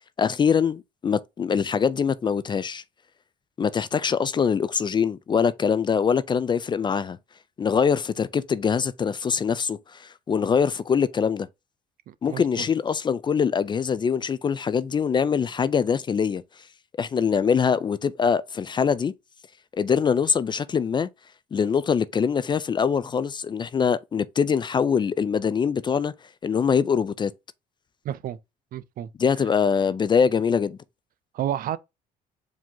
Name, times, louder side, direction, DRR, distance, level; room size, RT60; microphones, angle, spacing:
voice 1, 0.2-2.8 3.6-7.2 7.6-11.5 12.2-16.4 17.0-19.1 19.7-21.1 21.5-26.1 26.4-27.3 29.2-30.8, left 6 dB, 25° left, 0.3 m, -23 dB
voice 2, 12.1-12.7 28.0-28.4 28.7-29.1 31.3-31.8, right 11 dB, 60° right, 0.5 m, -30 dB
4.9 x 2.8 x 3.7 m
cardioid pair, 110°, 17 cm